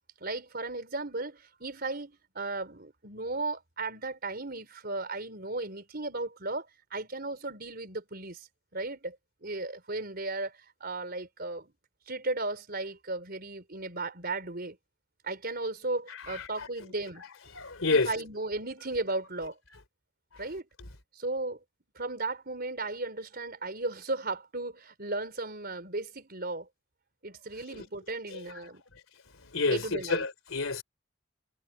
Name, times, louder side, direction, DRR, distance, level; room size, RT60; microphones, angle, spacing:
voice 1, 0.2-8.5 8.7-9.2 9.4-11.7 12.1-14.8 15.2-17.2 17.9-19.6 20.4-20.7 21.1-21.6 21.9-26.7 27.2-28.8 29.7-30.3, right 2 dB, 50° right, 4.6 m, -35 dB
voice 2, 16.3-16.7 17.5-18.1 28.3-28.4 29.4-30.8, left 3 dB, 90° left, 3.5 m, -29 dB
head